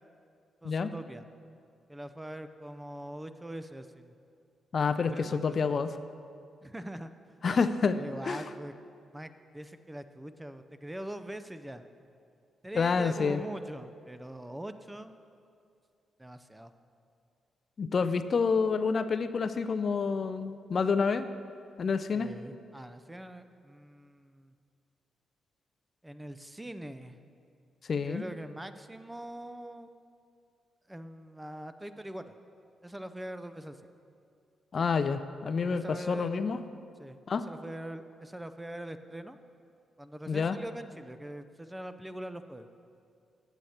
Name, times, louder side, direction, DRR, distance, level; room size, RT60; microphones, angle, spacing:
voice 1, 0.6-1.3 1.9-4.1 4.9-5.8 6.6-7.1 7.9-8.7 9.1-11.8 12.6-15.1 16.2-16.7 22.1-24.5 26.0-27.2 28.0-29.9 30.9-32.4 32.8-33.8 35.1-35.2 35.6-36.4 37.0-39.4 40.0-42.7, right 1 dB, 10° right, 10 dB, 0.4 m, -42 dB
voice 2, 4.7-5.9 7.4-8.0 8.3-8.4 12.8-13.4 17.8-21.3 21.8-22.3 27.9-28.2 34.7-36.6 37.3-37.5 40.3-40.6, left 5 dB, 55° left, 11 dB, 0.3 m, -28 dB
8.0 x 7.8 x 4.3 m, 2.4 s
supercardioid pair, 60°, 0 cm